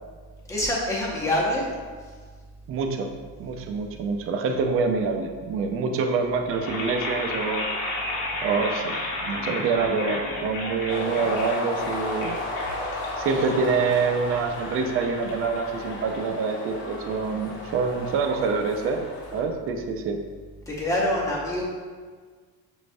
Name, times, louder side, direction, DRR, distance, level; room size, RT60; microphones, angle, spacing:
voice 1, 0.5-1.7 20.7-21.6, left 1 dB, 10° left, -5 dB, 0.7 m, -25 dB
voice 2, 2.7-3.1 3.4-7.7 8.4-12.4 13.2-20.2, right 4 dB, 40° right, 5 dB, 0.4 m, -26 dB
sound 1, 6.5-16.5, left 2 dB, 65° left, 0.9 m, -33 dB
sound 2, 10.9-19.4, left 2 dB, 35° left, 0.8 m, -34 dB
6.1 x 3.2 x 2.6 m, 1.5 s
cardioid pair, 170°, 34 cm